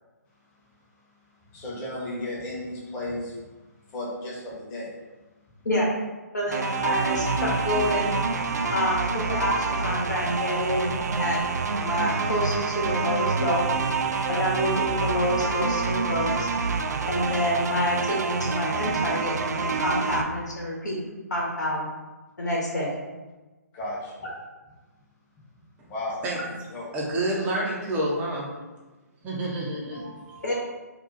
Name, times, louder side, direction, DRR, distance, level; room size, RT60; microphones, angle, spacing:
voice 1, 1.5-3.4 3.9-4.9 23.7-24.2 25.9-26.3 26.7-26.9 29.4-29.5 29.9-30.5, left 1 dB, 20° left, -5 dB, 0.9 m, -35 dB
voice 2, 6.3-8.1 8.7-11.4 11.8-13.6 14.3-16.5 17.1-21.0 21.3-21.8 22.4-22.9 30.4-30.5, equal, 75° left, -3 dB, 1.0 m, -27 dB
sound 1, 6.5-20.2, right 4 dB, 70° right, 0.4 m, -27 dB
voice 3, 26.9-28.5 29.2-30.0, right 1 dB, 15° right, -4 dB, 0.6 m, -28 dB
2.6 x 2.3 x 3.9 m, 1.2 s
figure-of-eight pair, 135°, 9 cm